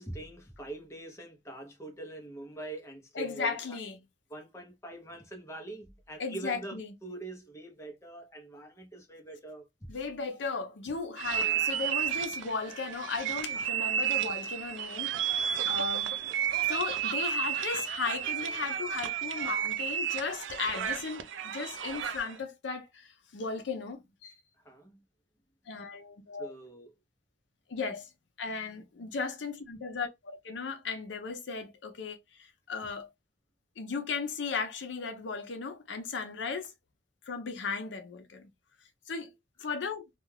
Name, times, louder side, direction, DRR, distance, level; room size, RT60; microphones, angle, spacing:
voice 1, 0.0-3.6 4.3-9.7 11.4-11.7 24.6-25.0 26.4-26.9, right 2 dB, 15° left, 0.7 m, -44 dB
voice 2, 3.1-4.0 6.2-6.9 9.9-16.1 16.7-24.3 25.7-26.5 27.7-28.1 28.4-33.1 33.8-36.7 37.3-38.5 39.1-39.3 39.6-40.0, left 4 dB, 70° left, 0.5 m, -36 dB
sound 1, 11.2-22.4, right 9 dB, 80° right, 0.4 m, -32 dB
Laughter, 16.1-19.3, right 3 dB, 55° right, 0.8 m, -42 dB
2.3 x 2.3 x 3.1 m
head